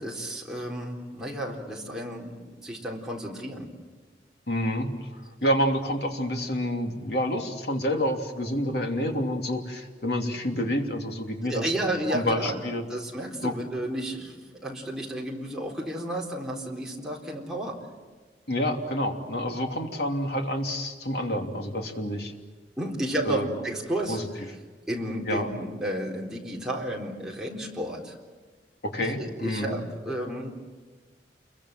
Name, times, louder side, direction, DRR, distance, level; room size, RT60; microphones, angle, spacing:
voice 1, 0.0-3.7 11.5-12.6 12.9-17.8 22.8-24.2 24.9-28.2 29.0-30.5, right 1 dB, 5° right, -3 dB, 3.9 m, -32 dB
voice 2, 4.5-11.7 12.1-12.9 13.4-13.6 18.5-22.3 23.2-23.5 24.1-24.3 25.3-25.5 28.8-29.8, equal, 65° left, 3 dB, 3.0 m, -28 dB
29.0 x 23.0 x 7.6 m, 1.4 s
head